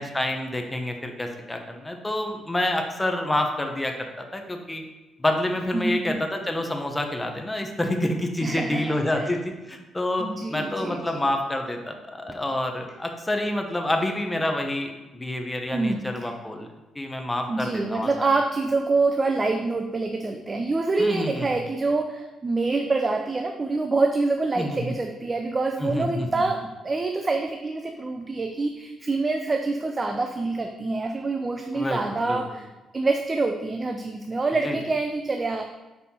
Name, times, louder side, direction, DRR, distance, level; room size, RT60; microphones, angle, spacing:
voice 1, 0.0-4.8 5.2-9.4 9.7-16.7 16.9-18.3 21.0-21.6 24.6-24.9 25.8-26.4 31.7-32.4 34.6-34.8, left 1 dB, 15° left, 4 dB, 0.8 m, -28 dB
voice 2, 5.7-6.2 8.4-9.3 10.2-11.3 12.3-12.4 15.7-16.3 17.5-32.7 32.9-35.6, right 3 dB, 30° right, 4 dB, 0.4 m, -26 dB
5.5 x 4.1 x 4.2 m, 1.1 s
cardioid pair, 90°, 0 cm